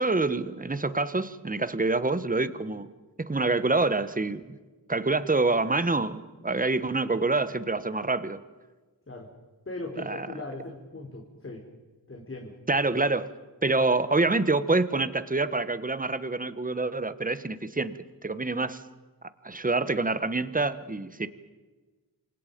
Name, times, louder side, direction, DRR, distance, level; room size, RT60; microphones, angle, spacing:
voice 1, 0.0-2.9 3.2-4.6 4.9-8.4 10.0-10.3 12.7-13.3 13.6-18.8 19.4-21.3, right 3 dB, 20° right, 13 dB, 1.4 m, -26 dB
voice 2, 9.7-11.6 12.1-12.5, left 2 dB, 30° left, 1 dB, 3.9 m, -39 dB
28.5 x 25.5 x 5.4 m, 1.3 s
wide cardioid pair, 100°, 42 cm